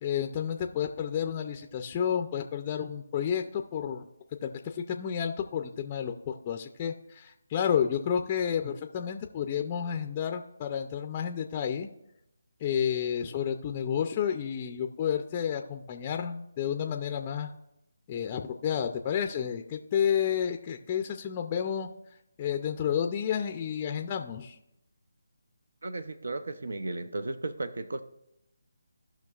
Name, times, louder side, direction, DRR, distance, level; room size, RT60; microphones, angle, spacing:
voice 1, 0.0-4.0 4.4-11.9 12.6-17.5 18.1-21.9 22.4-24.6, left 8 dB, 20° left, 0.4 m, -31 dB
voice 2, 25.8-28.0, right 2 dB, 75° right, 0.6 m, -35 dB
16.0 x 5.7 x 2.4 m
figure-of-eight pair, 165°, 0 cm